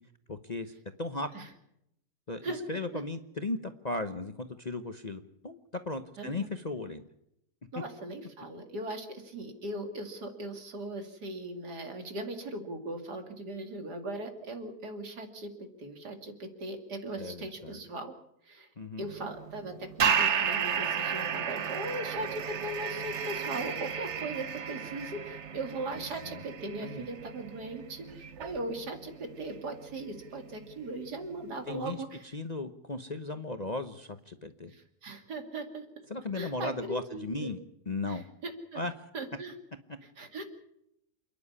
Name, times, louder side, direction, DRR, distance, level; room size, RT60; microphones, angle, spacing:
voice 1, 0.3-0.7 1.0-1.3 2.3-5.6 5.8-7.0 17.1-17.8 18.8-19.1 26.0-26.4 26.8-27.1 31.7-32.0 32.3-34.7 36.1-37.6 37.9-38.2 38.7-38.9 39.9-40.0, left 2 dB, 30° left, 8 dB, 0.8 m, -36 dB
voice 2, 6.2-6.5 7.7-18.1 18.4-18.7 19.0-32.3 34.7-35.9 36.3-37.5 38.1-38.8 39.1-39.5 40.2-40.4, right 2 dB, 75° right, 5 dB, 3.2 m, -39 dB
sound 1, 19.0-32.0, right 7 dB, 50° right, 1.2 m, -34 dB
28.0 x 10.5 x 9.8 m, 0.80 s
omnidirectional pair, 1.7 m